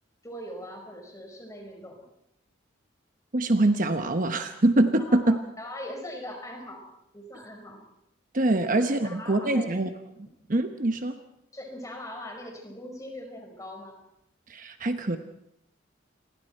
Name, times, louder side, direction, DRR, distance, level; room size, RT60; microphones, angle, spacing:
voice 1, 0.2-2.0 5.0-6.8 7.1-7.8 8.6-8.8 9.0-9.7 11.5-14.0, left 1 dB, 15° left, 2 dB, 5.3 m, -41 dB
voice 2, 3.3-5.4 8.3-9.9 10.2-11.2 14.5-15.2, right 2 dB, 40° right, 7 dB, 1.0 m, -24 dB
28.5 x 22.5 x 4.5 m, 0.80 s
head